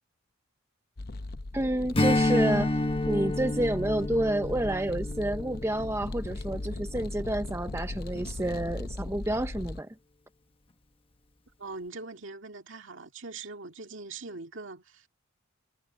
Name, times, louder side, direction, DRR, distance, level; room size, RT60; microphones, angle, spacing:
sound 1, 1.0-9.8, left 2 dB, 45° left, 0.7 m, -38 dB
voice 1, 1.5-2.7 3.1-9.9, right 1 dB, 10° right, 0.6 m, -29 dB
Strum, 1.9-6.7, left 2 dB, 25° left, 1.1 m, -29 dB
voice 2, 11.6-15.1, right 3 dB, 60° right, 2.3 m, -42 dB
head